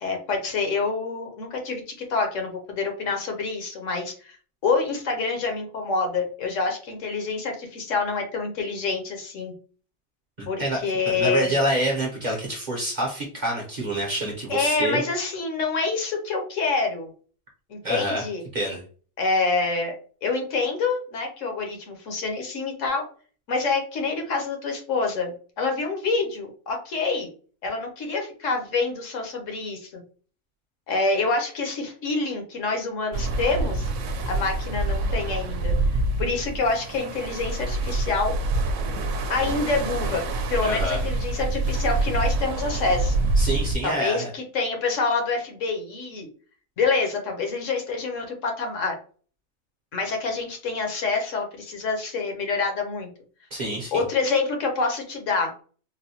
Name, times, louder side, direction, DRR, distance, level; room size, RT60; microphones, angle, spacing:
voice 1, 0.0-4.4 4.6-9.5 10.5-11.5 14.5-17.1 17.7-18.4 19.2-19.9 20.2-23.0 23.5-27.3 27.6-30.0 30.9-33.9 34.3-35.7 36.2-38.3 39.3-40.2 40.5-43.2 43.8-46.3 46.8-48.9 49.9-53.1 53.7-55.5, left 4 dB, 70° left, 3 dB, 1.1 m, -26 dB
voice 2, 10.4-15.0 17.8-18.3 18.5-18.8 40.6-41.0 43.4-44.3 53.5-54.0, right 1 dB, 40° right, -1 dB, 0.7 m, -27 dB
sound 1, 33.1-43.8, right 2 dB, 70° right, 0.9 m, -26 dB
4.0 x 2.1 x 2.7 m, 0.41 s
omnidirectional pair, 1.4 m